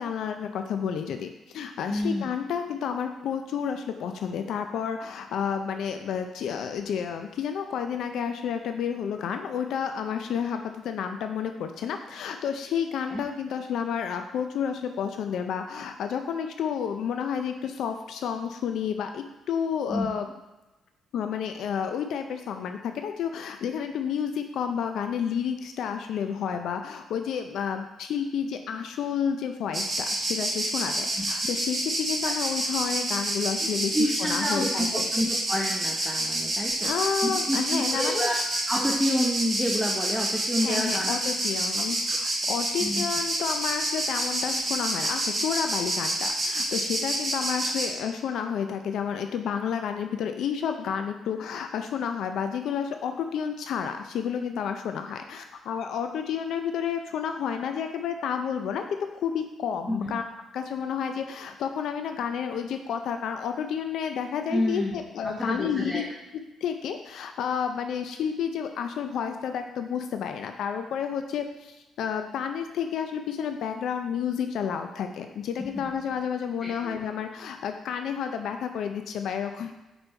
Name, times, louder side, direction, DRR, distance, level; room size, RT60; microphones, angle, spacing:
voice 1, 0.0-20.3 21.1-35.1 36.8-38.5 40.6-58.8 59.1-60.2 60.5-66.0 66.6-79.7, left 7 dB, 75° left, 6 dB, 0.5 m, -30 dB
voice 2, 1.9-2.3 13.1-13.2 19.9-20.1 31.4-31.5 32.3-32.4 33.6-36.9 37.2-38.4 38.7-41.1 41.8-41.9 42.8-43.1 47.7-47.8 59.9-60.2 64.5-65.0 65.2-66.1 75.6-75.8 76.6-77.0, equal, ahead, -1 dB, 0.8 m, -29 dB
Insect, 29.7-47.9, right 1 dB, 35° right, 2.0 m, -28 dB
5.3 x 4.3 x 4.4 m, 1.1 s
cardioid pair, 90°, 0 cm